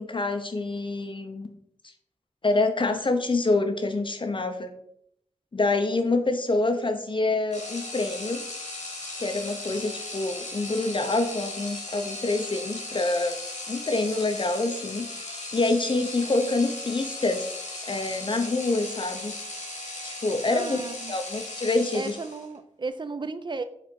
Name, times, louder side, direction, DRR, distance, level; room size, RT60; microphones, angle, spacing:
voice 1, 0.0-1.5 2.4-4.7 5.5-8.4 9.2-13.4 13.7-17.4 17.9-19.3 20.0-20.8 21.1-22.2, left 2 dB, 40° left, 6 dB, 0.5 m, -26 dB
sound 1, 7.5-22.6, left 2 dB, 75° left, 1.3 m, -37 dB
voice 2, 20.5-21.2 21.9-23.6, right 4 dB, 40° right, 12 dB, 0.4 m, -34 dB
4.4 x 2.5 x 4.2 m, 0.71 s
cardioid pair, 45°, 13 cm